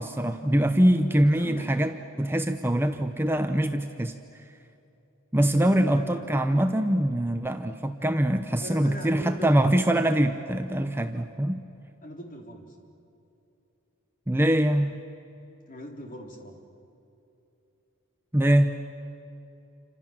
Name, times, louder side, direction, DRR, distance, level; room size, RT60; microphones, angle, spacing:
voice 1, 0.0-4.1 5.3-11.6 14.3-15.0 18.3-18.8, right 1 dB, 10° right, 6 dB, 0.8 m, -23 dB
voice 2, 1.3-1.6 5.6-6.4 8.6-9.7 12.0-12.7 15.7-16.6, equal, 40° left, 1 dB, 4.2 m, -40 dB
29.0 x 26.5 x 7.5 m, 2.8 s
head